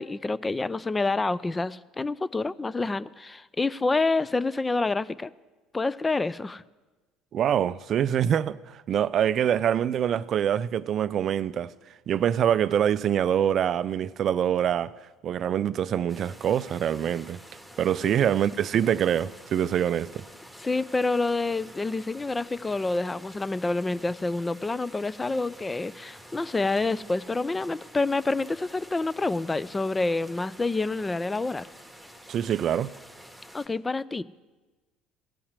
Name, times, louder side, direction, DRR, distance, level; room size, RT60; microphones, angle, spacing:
voice 1, 0.0-5.3 5.7-6.6 18.0-18.1 20.6-31.7 33.5-34.2, left 3 dB, 20° left, 0.4 m, -28 dB
voice 2, 7.3-11.7 12.1-14.9 15.2-17.4 17.8-20.2 32.3-32.9, right 9 dB, 50° right, 0.3 m, -25 dB
White Water, 16.1-33.7, equal, ahead, 1.9 m, -49 dB
15.0 x 5.7 x 8.1 m
hypercardioid pair, 60°, 0 cm